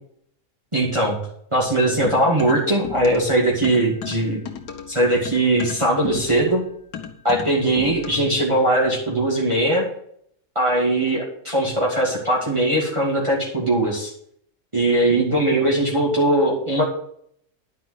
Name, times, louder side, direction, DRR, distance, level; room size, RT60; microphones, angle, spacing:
voice 1, 0.7-1.2 1.5-4.4 4.9-6.6 7.2-9.9 10.6-14.1 14.7-16.8, right 1 dB, 20° right, -4 dB, 2.4 m, -20 dB
sound 1, 2.0-3.4 3.6-8.4, left 7 dB, 85° left, 1.8 m, -35 dB
11.0 x 5.5 x 7.9 m, 0.67 s
omnidirectional pair, 1.7 m